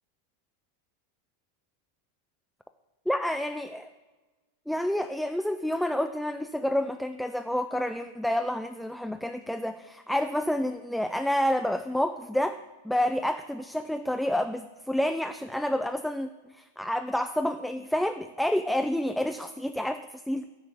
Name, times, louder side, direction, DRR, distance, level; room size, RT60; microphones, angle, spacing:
voice 1, 3.1-3.9 4.7-12.6 12.8-20.4, left 1 dB, ahead, 8 dB, 0.3 m, -29 dB
9.9 x 3.8 x 6.3 m, 1.3 s
figure-of-eight pair, 90°, 0 cm